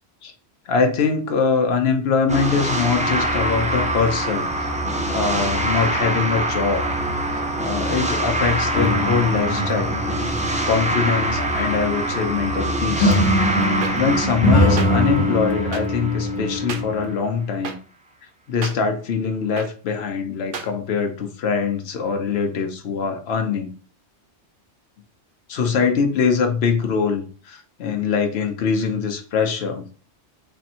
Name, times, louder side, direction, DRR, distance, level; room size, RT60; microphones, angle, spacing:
voice 1, 0.7-4.5 5.1-6.8 7.3-9.9 10.7-13.2 13.9-17.8 18.5-23.7 25.5-29.8, left 5 dB, 65° left, 4 dB, 1.0 m, -23 dB
sound 1, 2.3-16.6, right 1 dB, 10° right, 0.4 m, -24 dB
sound 2, 8.7-11.8 13.0-17.1, left 1 dB, 85° left, 1.3 m, -22 dB
sound 3, 13.8-13.9 14.8-14.9 15.7-15.8 16.7-16.8 17.6-17.7 18.6-18.7 19.6-19.7 20.5-20.7, right 5 dB, 55° right, 0.7 m, -30 dB
3.4 x 2.6 x 4.2 m, 0.38 s
omnidirectional pair, 1.2 m